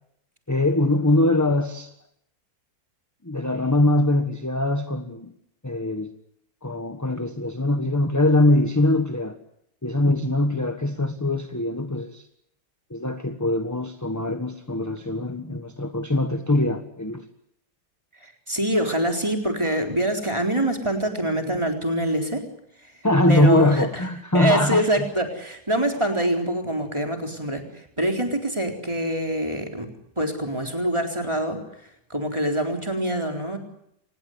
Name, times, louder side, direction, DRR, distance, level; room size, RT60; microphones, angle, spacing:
voice 1, 0.5-1.9 3.2-5.3 5.6-6.1 6.6-9.4 9.8-12.2 12.9-17.2 23.0-25.1, left 1 dB, 10° left, 8 dB, 1.3 m, -22 dB
voice 2, 18.2-22.5 23.3-23.9 24.3-29.9 30.2-31.6 32.1-33.6, right 1 dB, 15° right, 3 dB, 4.0 m, -25 dB
26.0 x 20.0 x 8.1 m, 0.75 s
omnidirectional pair, 1.7 m